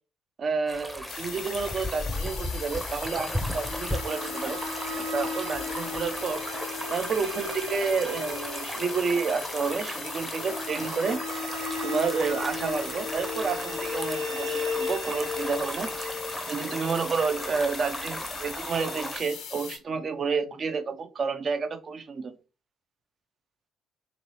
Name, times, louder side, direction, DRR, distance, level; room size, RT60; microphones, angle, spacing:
voice 1, 0.4-4.6 5.0-6.4 6.9-11.4 11.8-16.1 16.5-22.4, right 5 dB, 45° right, 8 dB, 0.5 m, -30 dB
sound 1, 0.7-19.2, equal, 5° right, 0.7 m, -36 dB
sound 2, 1.1-19.8, left 7 dB, 60° left, 0.5 m, -40 dB
sound 3, 3.2-18.1, left 3 dB, 70° right, 0.8 m, -36 dB
3.0 x 2.6 x 3.0 m, 0.33 s
figure-of-eight pair, 45°, 0 cm